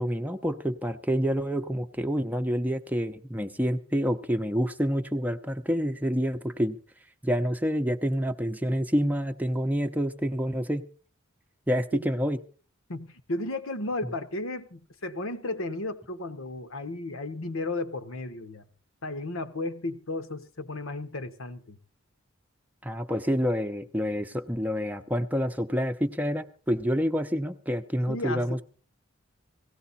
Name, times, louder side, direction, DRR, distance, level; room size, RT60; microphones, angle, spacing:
voice 1, 0.0-6.8 7.2-10.8 11.7-12.4 22.8-28.6, equal, 5° right, 0.8 m, -28 dB
voice 2, 12.9-18.7 19.0-21.8 28.1-28.6, left 2 dB, 65° left, 1.2 m, -34 dB
17.5 x 15.5 x 4.2 m
head